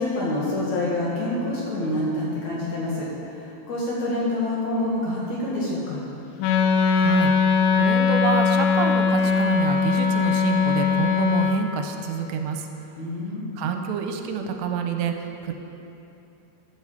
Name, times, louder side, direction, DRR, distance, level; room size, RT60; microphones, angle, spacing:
voice 1, 0.0-6.0 13.0-13.5, left 1 dB, 55° left, -6 dB, 2.4 m, -27 dB
Wind instrument woodwind instrument, 6.4-11.6, left 6 dB, 90° left, 2.1 m, -20 dB
voice 2, 6.9-12.7 13.6-15.5, right 7 dB, 85° right, 5 dB, 2.8 m, -28 dB
9.9 x 8.4 x 7.1 m, 2.8 s
omnidirectional pair, 5.0 m